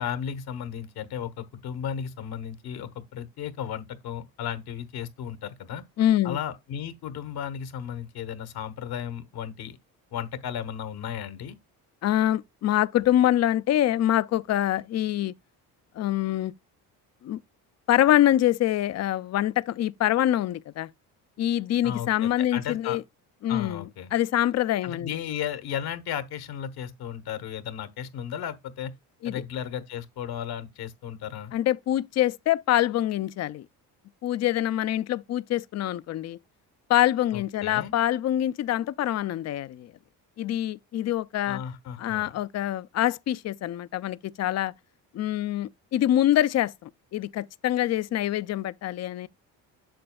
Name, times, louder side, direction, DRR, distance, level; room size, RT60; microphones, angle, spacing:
voice 1, 0.0-5.8 6.2-9.8 10.1-11.5 21.8-23.0 23.5-24.1 24.8-28.9 29.2-31.5 37.3-37.9 41.5-42.3, left 9 dB, 70° left, 1.2 m, -34 dB
voice 2, 6.0-6.4 12.0-15.3 16.0-16.5 17.2-17.4 17.9-20.9 21.4-23.0 23.4-25.1 29.2-29.4 31.5-33.6 34.2-36.4 36.9-39.9 40.4-41.6 42.0-44.7 45.1-49.3, left 12 dB, 40° left, 0.5 m, -25 dB
7.8 x 6.8 x 2.3 m
cardioid pair, 90°, 39 cm